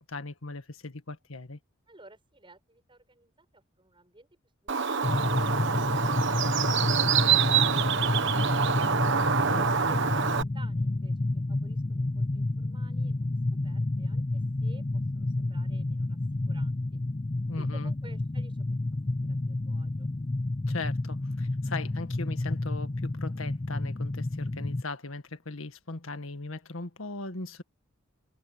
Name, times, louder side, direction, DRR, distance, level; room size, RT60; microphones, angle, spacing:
voice 1, 0.1-1.6 9.5-9.9 17.5-17.9 20.7-27.6, left 3 dB, 80° left, 1.8 m, -38 dB
voice 2, 1.9-4.3 9.3-13.4 13.6-16.2 16.5-17.0 17.6-18.7 19.1-20.1, right 2 dB, 25° right, 7.3 m, -54 dB
Bird, 4.7-10.4, right 7 dB, 60° right, 1.1 m, -26 dB
sound 1, 5.0-24.8, left 2 dB, 25° left, 0.5 m, -30 dB
head